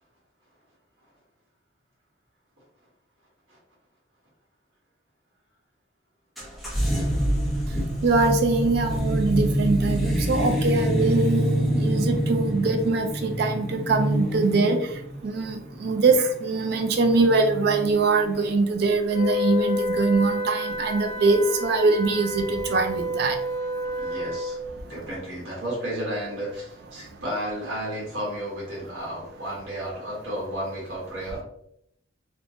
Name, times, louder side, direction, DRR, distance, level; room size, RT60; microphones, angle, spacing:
sound 1, 6.4-18.5, right 1 dB, ahead, 0.6 m, -26 dB
voice 1, 8.0-14.9 15.2-23.4, right 3 dB, 55° right, 6 dB, 0.4 m, -23 dB
Wind instrument woodwind instrument, 19.1-24.6, left 1 dB, 70° left, 0.7 m, -29 dB
voice 2, 24.0-24.6 24.9-31.4, equal, 75° right, -5 dB, 1.2 m, -32 dB
2.9 x 2.1 x 2.6 m, 0.74 s
head